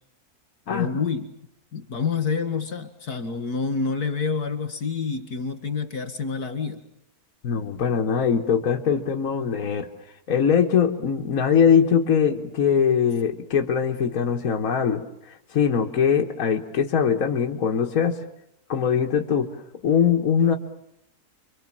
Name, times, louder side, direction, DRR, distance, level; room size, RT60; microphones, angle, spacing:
voice 1, 0.7-1.3 1.7-6.8, left 5 dB, 85° left, 9 dB, 2.5 m, -28 dB
voice 2, 7.4-9.9 10.3-18.2 18.7-19.5 19.8-20.6, left 7 dB, 65° left, 2 dB, 1.7 m, -22 dB
29.0 x 23.5 x 7.5 m, 0.78 s
omnidirectional pair, 1.6 m